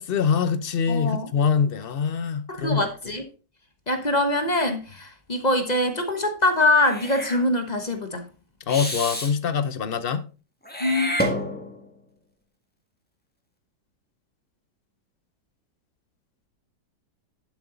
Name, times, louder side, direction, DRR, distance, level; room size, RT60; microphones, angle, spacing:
voice 1, 0.0-2.9 8.7-10.3, left 6 dB, 50° left, 0.7 m, -24 dB
voice 2, 0.9-1.3 2.5-3.2 3.9-8.3 10.8-11.2, left 1 dB, 30° left, 1.1 m, -23 dB
Meow / Hiss, 6.8-7.4 8.7-9.3 10.6-11.9, equal, 5° left, 1.7 m, -29 dB
11.0 x 6.9 x 3.9 m
omnidirectional pair, 1.8 m